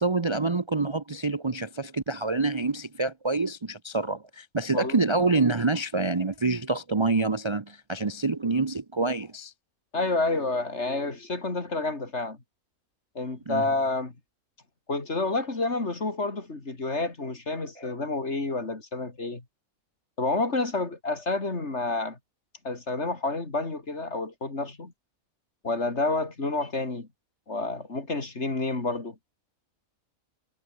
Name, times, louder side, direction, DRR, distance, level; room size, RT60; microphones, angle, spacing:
voice 1, 0.0-9.5 13.5-13.6 17.8-17.9, right 3 dB, 25° right, 0.8 m, -27 dB
voice 2, 9.9-12.4 13.2-14.1 14.9-19.4 20.2-22.2 22.6-24.9 25.6-27.1 27.5-29.2, left 3 dB, 50° left, 3.6 m, -29 dB
omnidirectional pair, 1.5 m